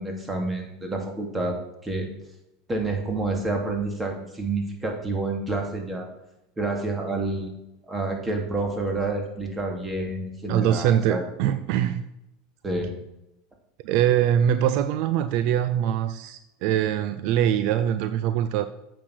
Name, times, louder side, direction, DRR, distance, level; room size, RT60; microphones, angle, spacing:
voice 1, 0.0-1.6 1.8-2.1 2.7-6.1 6.6-7.5 7.9-11.2 12.6-12.9, right 2 dB, 15° right, 2.7 m, -28 dB
voice 2, 10.5-12.0 13.8-18.7, right 10 dB, 60° right, 0.5 m, -23 dB
8.5 x 6.3 x 6.2 m
hypercardioid pair, 95°, 0 cm